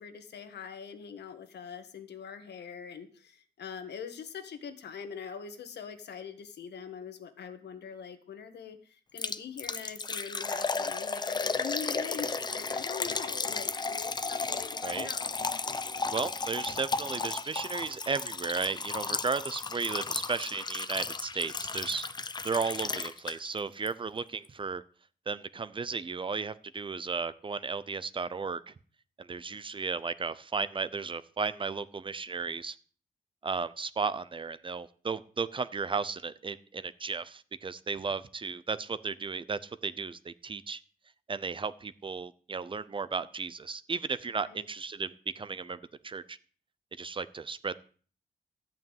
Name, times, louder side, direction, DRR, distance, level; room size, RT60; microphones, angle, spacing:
voice 1, 0.0-15.4 44.4-44.7, left 7 dB, 80° left, 8 dB, 1.7 m, -43 dB
Liquid, 9.2-23.6 23.9-24.0 24.4-24.5, left 4 dB, 25° left, 0.7 m, -34 dB
voice 2, 16.1-22.1 22.4-24.8 25.3-28.7 29.2-32.8 33.4-40.8 41.3-45.8 46.0-46.4 47.0-47.7, right 4 dB, 30° right, 15 dB, 0.6 m, -34 dB
13.5 x 5.8 x 9.1 m, 0.43 s
wide cardioid pair, 150°, 17 cm